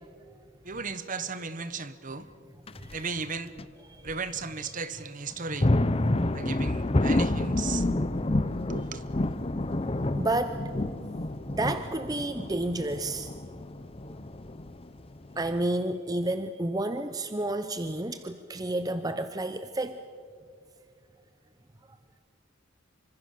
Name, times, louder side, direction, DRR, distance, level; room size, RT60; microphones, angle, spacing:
voice 1, 0.6-2.3 2.9-3.5 4.0-5.7 6.3-7.9 8.7-9.0, right 4 dB, 40° right, 1.2 m, -35 dB
sound 1, 2.7-3.0 3.6-3.7 4.1-4.2 5.3-15.6, left 1 dB, 30° left, 0.7 m, -29 dB
voice 2, 8.0-8.4 10.2-10.6 11.5-13.3 15.4-20.0, right 1 dB, 20° right, 0.7 m, -31 dB
27.0 x 25.0 x 6.8 m
head